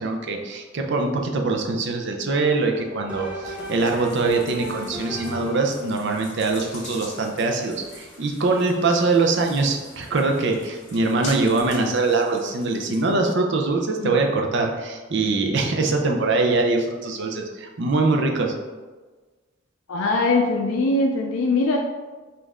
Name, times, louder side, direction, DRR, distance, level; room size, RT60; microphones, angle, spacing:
voice 1, 0.0-18.5, right 3 dB, 60° right, 2 dB, 0.6 m, -23 dB
sound 1, 2.4-5.8, right 1 dB, 10° right, 0.8 m, -36 dB
sound 2, 3.4-13.1, left 2 dB, 35° left, 1.4 m, -44 dB
voice 2, 19.9-21.8, left 2 dB, 85° left, 0 dB, 0.4 m, -21 dB
5.2 x 2.6 x 3.5 m, 1.3 s
head